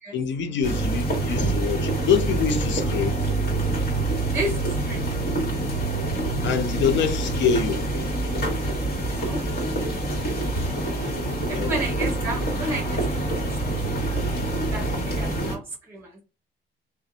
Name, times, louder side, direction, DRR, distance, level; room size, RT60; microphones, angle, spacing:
voice 1, 0.1-3.2 6.4-7.9 11.5-11.7, left 6 dB, 65° left, 0.5 m, -25 dB
sound 1, 0.6-15.6, right 2 dB, 50° left, 1.5 m, -26 dB
voice 2, 4.3-5.1 9.1-9.4 11.5-14.1 14.7-16.2, right 1 dB, 10° right, 0.8 m, -33 dB
2.5 x 2.2 x 2.6 m
cardioid pair, 90°, 20 cm